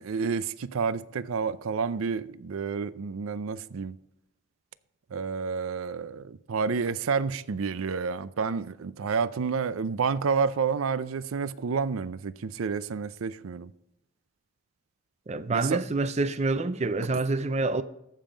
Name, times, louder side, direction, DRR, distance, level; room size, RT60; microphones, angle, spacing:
voice 1, 0.0-3.9 5.1-13.7 15.5-15.8, right 5 dB, 85° right, 0.5 m, -29 dB
voice 2, 15.3-17.8, right 3 dB, 30° right, 0.5 m, -27 dB
14.5 x 5.6 x 5.1 m
head